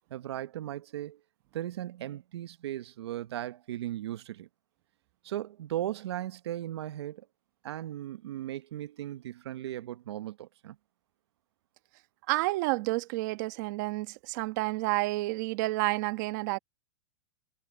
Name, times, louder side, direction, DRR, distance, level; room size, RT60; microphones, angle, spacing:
voice 1, 0.1-1.2 1.5-4.5 5.2-7.3 7.6-10.8, right 13 dB, 70° right, 1.0 m, -37 dB
voice 2, 12.3-16.6, right 21 dB, 45° right, 1.3 m, -30 dB
supercardioid pair, 155°, 14 cm